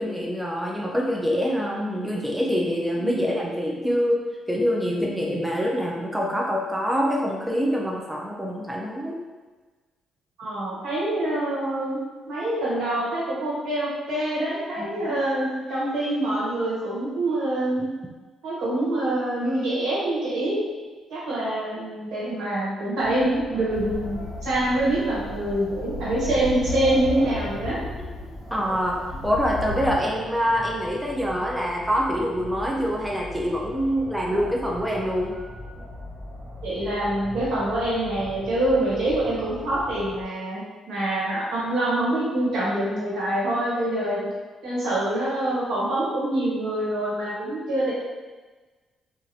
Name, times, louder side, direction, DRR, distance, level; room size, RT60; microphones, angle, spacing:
voice 1, 0.0-9.2 14.8-15.2 28.5-29.0 29.2-35.4, equal, 5° right, -2 dB, 0.4 m, -25 dB
voice 2, 3.0-3.3 10.4-12.0 12.3-17.8 18.4-20.6 21.1-27.8 36.6-40.6 40.9-44.3 44.6-47.9, right 1 dB, 80° right, -8 dB, 1.3 m, -25 dB
sound 1, 23.0-40.2, left 1 dB, 45° right, 0.8 m, -40 dB
sound 2, 23.7-30.0, left 2 dB, 60° left, 0.7 m, -35 dB
3.0 x 2.4 x 2.7 m, 1.3 s
cardioid pair, 90°, 0 cm